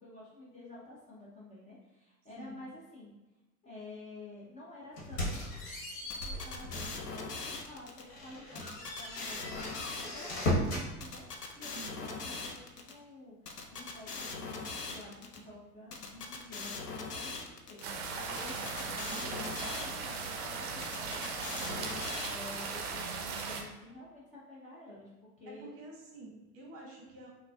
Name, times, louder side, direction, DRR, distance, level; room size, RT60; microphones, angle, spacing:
voice 1, 0.0-3.2 3.6-5.6 6.2-19.5 19.8-25.1 25.4-25.7, left 2 dB, 15° left, -7 dB, 0.7 m, -51 dB
sound 1, 5.0-7.1 7.5-7.6 8.1-10.9, left 1 dB, 55° left, 1.2 m, -36 dB
sound 2, 6.1-8.0 8.5-10.5 11.0-12.9 13.5-15.4 15.9-17.8 18.4-20.3 20.8-22.7, left 4 dB, 85° left, 0.6 m, -41 dB
voice 2, 11.7-12.4 18.6-19.7 25.5-27.3, right 2 dB, 30° right, -2 dB, 1.0 m, -49 dB
sound 3, 17.8-23.6, right 4 dB, 45° right, 0.6 m, -38 dB
5.6 x 2.2 x 2.3 m, 1.1 s
figure-of-eight pair, 85°, 46 cm